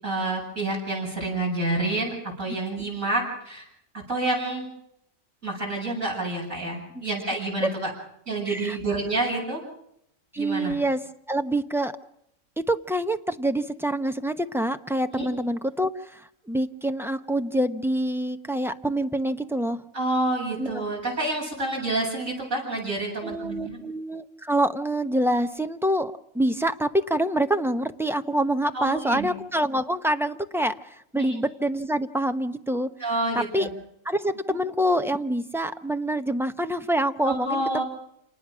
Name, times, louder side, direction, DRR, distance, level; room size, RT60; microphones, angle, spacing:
voice 1, 0.0-3.7 4.1-4.7 5.4-7.9 8.3-9.6 10.4-10.7 15.1-15.3 19.9-23.8 28.7-29.3 31.2-31.4 33.0-33.7 34.5-34.6 37.2-37.8, right 2 dB, 85° right, -1 dB, 8.7 m, -28 dB
voice 2, 8.5-8.8 10.3-11.0 11.3-11.9 12.7-19.8 20.6-20.8 23.2-32.9 33.3-33.7 34.0-37.8, right 1 dB, ahead, 8 dB, 0.8 m, -26 dB
28.0 x 19.5 x 6.3 m, 0.75 s
omnidirectional pair, 1.4 m